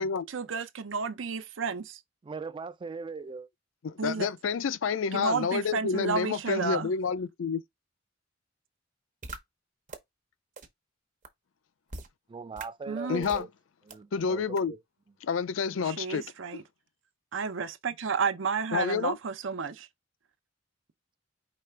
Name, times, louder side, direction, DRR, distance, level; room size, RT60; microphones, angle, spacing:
voice 1, 0.0-2.0 4.0-4.3 5.1-6.9 12.9-13.2 15.8-16.6 17.3-19.9, right 5 dB, 70° right, 0.6 m, -32 dB
voice 2, 2.2-3.5 12.3-13.5 13.9-14.8, right 4 dB, 25° right, 0.3 m, -40 dB
voice 3, 3.8-7.6 13.1-13.5 14.1-14.8 15.2-16.2 18.7-19.2, left 5 dB, 75° left, 0.4 m, -29 dB
sound 1, 9.2-9.4 9.9-10.0 10.6-10.7 11.2-11.3 11.9-12.1 12.6-12.7 13.2-13.4 13.9-14.0 14.6-14.7, right 3 dB, 40° right, 0.9 m, -40 dB
5.0 x 3.3 x 3.3 m
head